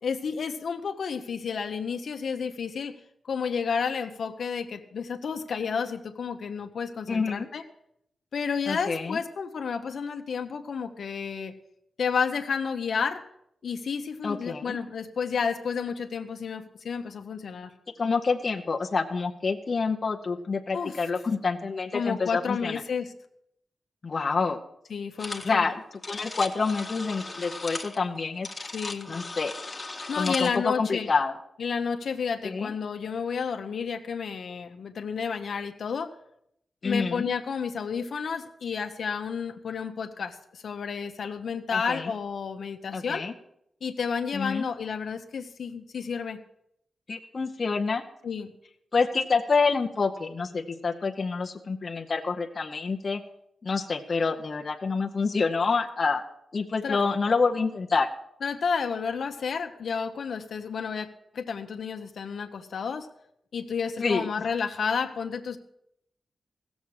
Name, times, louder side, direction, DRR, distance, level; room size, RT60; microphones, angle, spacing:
voice 1, 0.0-2.9 3.3-7.6 8.3-11.5 12.0-13.2 13.6-17.7 20.7-20.9 21.9-23.1 24.9-25.7 28.7-29.2 30.1-31.1 31.6-36.1 36.8-43.3 43.8-46.4 48.2-48.5 56.8-57.0 58.4-61.1 61.3-63.1 63.5-65.6, left 6 dB, 70° left, 6 dB, 0.9 m, -31 dB
voice 2, 7.1-7.5 8.7-9.2 14.2-14.8 18.0-22.8 24.0-24.6 25.4-28.5 29.1-29.5 30.1-31.3 32.4-32.7 36.8-37.3 41.7-42.1 42.9-43.3 44.3-44.7 47.1-48.0 48.9-53.2 53.6-56.2 56.5-58.1 64.0-64.3, left 4 dB, 40° left, 2 dB, 0.8 m, -27 dB
sound 1, 25.2-25.5 25.8-30.6, left 2 dB, 20° left, 1.1 m, -37 dB
16.0 x 7.2 x 6.4 m, 0.74 s
wide cardioid pair, 125°, 0 cm